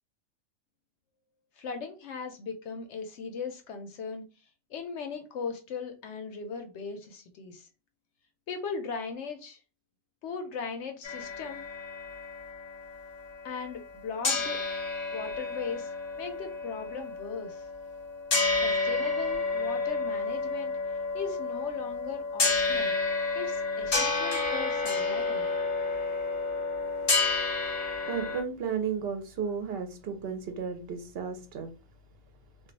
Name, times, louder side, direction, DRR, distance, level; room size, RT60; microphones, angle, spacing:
voice 1, 1.6-4.2 4.7-7.7 8.5-9.6 10.2-11.6 13.4-14.6 15.1-17.7 18.6-20.7 21.1-22.9 23.3-25.5, left 5 dB, 65° left, 0.8 m, -38 dB
sound 1, 11.0-14.0 14.2-28.4, left 3 dB, 45° left, 0.5 m, -30 dB
voice 2, 28.1-31.7, right 6 dB, 60° right, 0.7 m, -33 dB
2.3 x 2.3 x 3.9 m
omnidirectional pair, 1.4 m